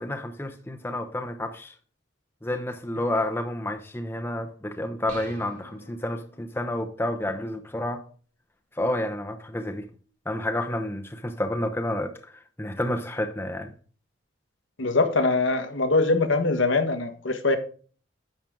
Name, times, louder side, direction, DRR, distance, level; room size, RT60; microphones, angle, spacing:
voice 1, 0.0-1.7 2.4-8.0 8.7-9.9 10.2-13.7, left 1 dB, 10° left, 0.8 m, -30 dB
sound 1, 5.1-6.7, right 1 dB, 50° right, 4.1 m, -46 dB
voice 2, 14.8-17.6, left 3 dB, 80° left, 1.4 m, -23 dB
10.5 x 7.5 x 3.6 m
head